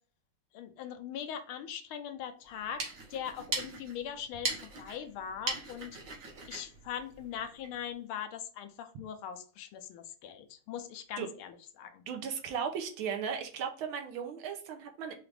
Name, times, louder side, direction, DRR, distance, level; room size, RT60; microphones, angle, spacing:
voice 1, 0.5-2.8 3.1-6.0 6.5-12.0, left 9 dB, 80° left, 8 dB, 1.4 m, -41 dB
sound 1, 2.5-7.8, right 3 dB, 45° right, 1.3 m, -40 dB
voice 2, 12.1-15.1, right 7 dB, 75° right, 5 dB, 1.5 m, -36 dB
4.8 x 2.5 x 3.2 m, 0.44 s
omnidirectional pair, 2.4 m